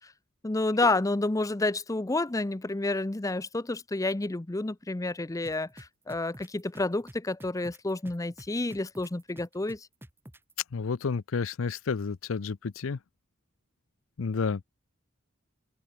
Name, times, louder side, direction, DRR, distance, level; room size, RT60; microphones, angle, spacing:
voice 1, 0.4-9.9, left 2 dB, 15° left, 0.6 m, -29 dB
sound 1, 5.4-10.5, equal, 10° right, 3.7 m, -48 dB
voice 2, 10.7-13.0 14.2-14.6, left 5 dB, 85° left, 0.6 m, -30 dB
head